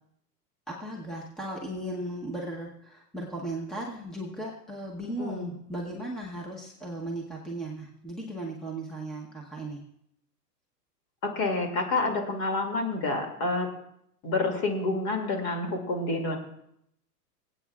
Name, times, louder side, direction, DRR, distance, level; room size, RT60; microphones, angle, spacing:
voice 1, 0.7-9.8, right 1 dB, ahead, -2 dB, 0.9 m, -36 dB
voice 2, 11.2-13.7 14.2-16.4, left 2 dB, 35° left, 2 dB, 2.4 m, -28 dB
25.0 x 8.5 x 2.4 m, 0.74 s
hypercardioid pair, 135°, 47 cm